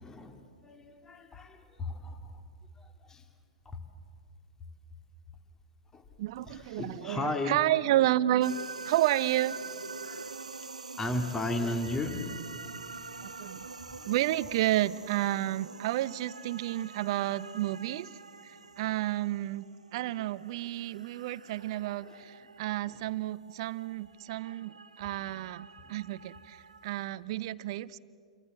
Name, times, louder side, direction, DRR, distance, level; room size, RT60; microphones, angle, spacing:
voice 1, 0.0-2.4 2.8-3.3 3.7-3.8 5.9-6.0 6.4-7.6 10.0-10.3 11.0-12.3 12.6-12.9 13.5-14.1 21.8-22.2 22.9-23.0, left 2 dB, 15° left, 6 dB, 2.3 m, -36 dB
voice 2, 6.2-8.5 8.8-9.6 13.2-13.6 14.0-18.1 18.4-19.6 19.9-28.0, right 14 dB, 50° right, 17 dB, 0.8 m, -31 dB
sound 1, 8.4-27.0, right 4 dB, 85° right, 0.9 m, -46 dB
28.5 x 23.5 x 7.8 m, 2.3 s
figure-of-eight pair, 110°, 4 cm